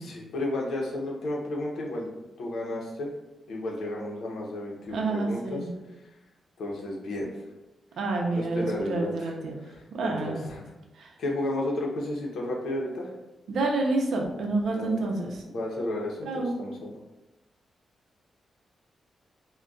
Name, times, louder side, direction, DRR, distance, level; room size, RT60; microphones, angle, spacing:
voice 1, 0.0-2.1 2.4-3.1 3.5-5.7 6.6-7.4 8.3-9.3 9.6-10.7 11.2-13.1 14.7-15.0 15.5-17.0, left 1 dB, 80° left, -1 dB, 0.7 m, -32 dB
voice 2, 4.9-5.7 8.0-9.6 9.9-10.4 11.0-11.1 13.5-15.4 16.2-16.6, right 2 dB, 80° right, 1 dB, 0.5 m, -28 dB
2.3 x 2.2 x 3.8 m, 1.1 s
wide cardioid pair, 155°, 0 cm